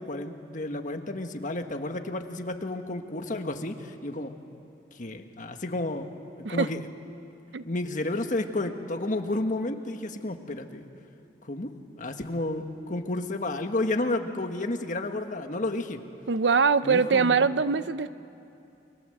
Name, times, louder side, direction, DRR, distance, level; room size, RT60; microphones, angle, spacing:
voice 1, 0.0-4.3 4.9-6.1 6.4-6.9 7.6-10.9 11.4-11.7 12.0-16.0 16.8-17.5, left 2 dB, 45° left, 6 dB, 1.5 m, -31 dB
voice 2, 16.3-18.2, right 5 dB, 80° right, 14 dB, 0.6 m, -23 dB
29.5 x 25.0 x 7.9 m, 2.7 s
head